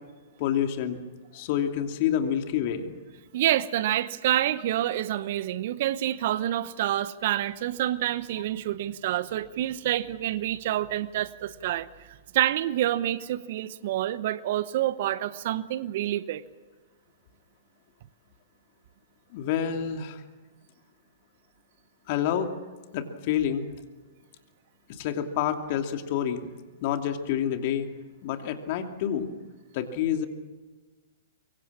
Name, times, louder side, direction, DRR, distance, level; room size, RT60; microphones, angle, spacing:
voice 1, 0.4-1.0 1.3-3.0 19.3-20.2 22.1-22.5 22.9-23.7 24.9-26.5 26.8-27.9 28.2-29.3 29.7-30.3, left 9 dB, 45° left, 2.7 m, -28 dB
voice 2, 3.3-11.9 12.3-16.4, right 13 dB, 55° right, 0.9 m, -27 dB
24.5 x 23.0 x 7.5 m
hypercardioid pair, 115°, 0 cm